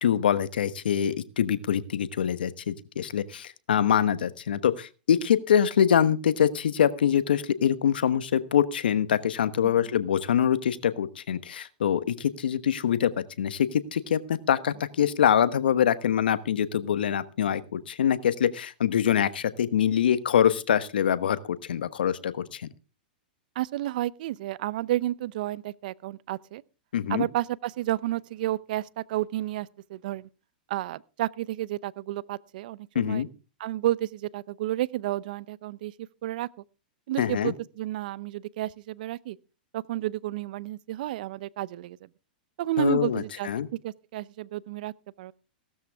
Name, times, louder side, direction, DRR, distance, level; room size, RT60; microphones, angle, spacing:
voice 1, 0.0-13.1 13.4-22.6 26.9-27.3 32.9-33.3 37.2-37.5 42.8-43.7, left 9 dB, 80° left, 1.1 m, -24 dB
voice 2, 23.6-26.6 27.1-30.3 30.7-33.2 33.6-35.9 36.2-36.5 37.1-39.4 39.7-42.1 42.6-43.5 43.8-45.3, right 15 dB, 60° right, 0.7 m, -31 dB
16.5 x 13.0 x 3.5 m
hypercardioid pair, 120°, 5 cm